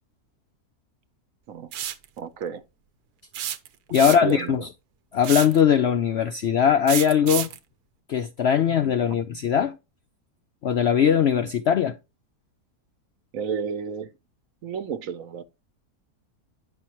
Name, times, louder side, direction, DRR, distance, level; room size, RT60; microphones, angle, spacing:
sound 1, 1.7-2.1 3.3-4.4 5.2-5.6 6.9-7.6, right 10 dB, 85° right, 1.3 m, -30 dB
voice 1, 2.2-2.6 4.0-4.7 13.3-14.1 14.6-15.4, right 7 dB, 65° right, 1.1 m, -32 dB
voice 2, 3.9-4.7 5.1-7.5 8.1-9.8 10.6-12.0, left 8 dB, 70° left, 0.6 m, -20 dB
9.5 x 5.7 x 2.9 m
omnidirectional pair, 1.6 m